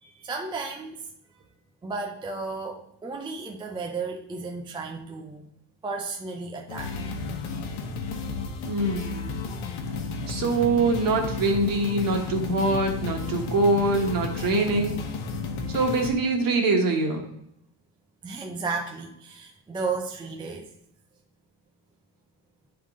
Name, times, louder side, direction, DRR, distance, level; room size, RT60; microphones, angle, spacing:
voice 1, 0.0-1.0 1.8-5.5 5.8-7.2 18.2-20.7, right 4 dB, 10° right, 1 dB, 0.3 m, -34 dB
sound 1, 6.7-16.1, left 4 dB, 75° left, 1.1 m, -33 dB
voice 2, 8.6-9.4 10.3-15.0 15.7-17.2, right 2 dB, 45° right, 3 dB, 1.4 m, -24 dB
9.5 x 3.8 x 3.6 m, 0.75 s
cardioid pair, 155°, 48 cm